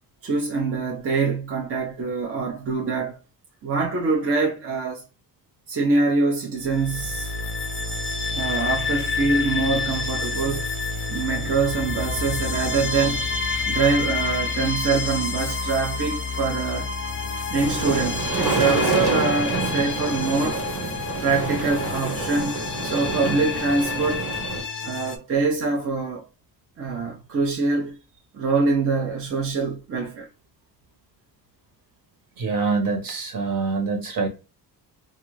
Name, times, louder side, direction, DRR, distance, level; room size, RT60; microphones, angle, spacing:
voice 1, 0.2-3.2 3.6-5.0 5.7-7.3 8.3-10.7 11.1-13.3 13.7-16.9 17.5-20.6 21.2-24.3 24.8-26.3 26.8-28.0 28.3-30.3, right 4 dB, 35° right, 0.7 m, -24 dB
sound 1, 6.6-25.2, left 4 dB, 30° left, 0.4 m, -29 dB
sound 2, 17.6-24.6, right 4 dB, 80° right, 1.5 m, -27 dB
voice 2, 32.4-34.3, right 4 dB, 55° right, 1.2 m, -25 dB
2.5 x 2.5 x 3.0 m
cardioid pair, 140°, 39 cm